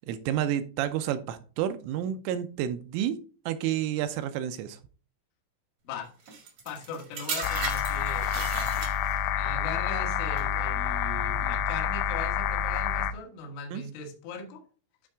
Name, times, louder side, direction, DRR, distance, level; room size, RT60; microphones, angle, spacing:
voice 1, 0.1-3.2 3.5-4.8 13.7-13.8, right 10 dB, 85° right, 9 dB, 3.1 m, -30 dB
sound 1, 6.3-9.3 10.1-10.4, right 5 dB, 60° right, 1.6 m, -36 dB
voice 2, 6.7-8.9 9.3-14.6, left 4 dB, 70° left, 3 dB, 3.6 m, -39 dB
sound 2, 7.4-13.1, left 8 dB, 90° left, 2.6 m, -28 dB
11.5 x 4.6 x 3.5 m, 0.38 s
omnidirectional pair, 5.9 m